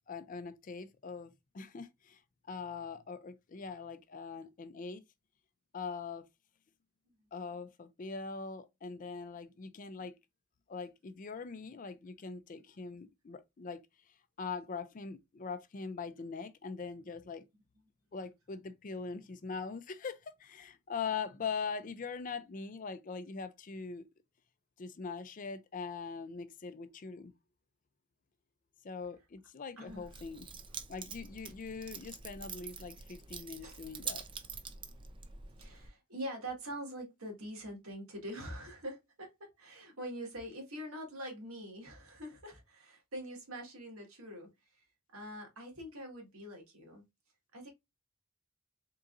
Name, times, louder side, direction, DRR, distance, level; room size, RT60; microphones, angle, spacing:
voice 1, 0.1-2.2 2.5-5.0 5.7-6.3 7.3-10.1 10.7-13.8 14.4-17.4 18.1-24.0 24.8-27.3 28.8-30.5 30.9-34.2, left 5 dB, 35° left, 0.4 m, -42 dB
voice 2, 29.8-30.1 33.6-33.8 35.6-44.8 45.1-47.0 47.5-47.7, equal, 75° right, 1.7 m, -44 dB
Keys jangling, 29.9-35.9, right 5 dB, 20° right, 0.4 m, -46 dB
4.0 x 3.7 x 2.5 m
head